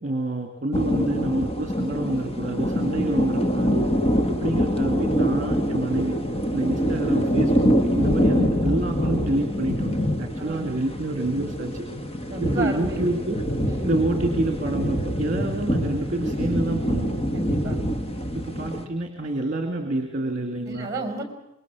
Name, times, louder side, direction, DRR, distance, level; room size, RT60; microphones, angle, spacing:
voice 1, 0.0-3.9 4.3-6.2 6.5-11.9 12.4-13.4 13.9-17.2 18.3-20.9, right 1 dB, 35° right, 4 dB, 2.3 m, -28 dB
sound 1, 0.7-18.8, equal, 30° left, 1.5 m, -25 dB
voice 2, 4.1-4.4 6.5-6.7 10.4-10.8 12.3-13.0 13.6-13.9 17.3-17.8 20.6-21.2, right 2 dB, 15° right, 5 dB, 4.9 m, -33 dB
26.0 x 22.0 x 6.2 m, 0.88 s
head